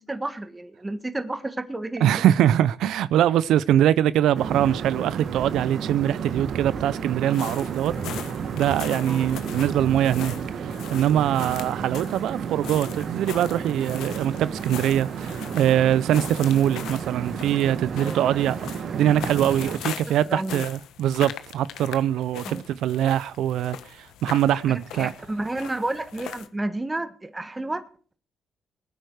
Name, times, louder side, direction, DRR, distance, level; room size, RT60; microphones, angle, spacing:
voice 1, 0.1-2.3 9.1-9.3 17.9-18.5 20.3-20.6 22.4-22.6 24.5-24.6 25.0-27.8, right 2 dB, 15° right, 1.6 m, -31 dB
voice 2, 2.0-7.9 8.5-10.4 10.6-18.6 18.9-25.1, right 11 dB, 80° right, 0.5 m, -23 dB
sound 1, 4.3-19.8, right 7 dB, 60° right, 1.7 m, -32 dB
sound 2, 7.3-26.5, left 10 dB, 85° left, 1.3 m, -40 dB
21.0 x 9.4 x 4.7 m
cardioid pair, 90°, 0 cm